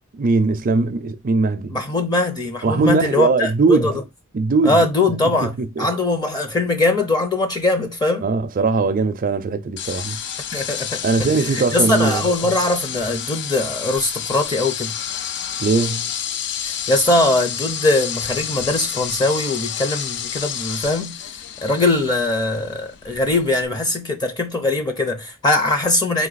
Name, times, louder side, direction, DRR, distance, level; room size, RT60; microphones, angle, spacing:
voice 1, 0.1-1.8 2.6-4.0 4.3-4.8 5.4-5.9 8.2-10.2 11.0-12.3 15.6-16.1, right 3 dB, 40° right, 0.4 m, -20 dB
voice 2, 1.7-3.9 4.6-5.5 5.8-8.3 10.5-11.3 11.5-14.9 16.6-21.2 21.6-26.3, left 2 dB, 20° left, 0.7 m, -21 dB
sound 1, 9.8-23.7, left 9 dB, 55° left, 0.4 m, -30 dB
3.9 x 2.7 x 3.9 m
head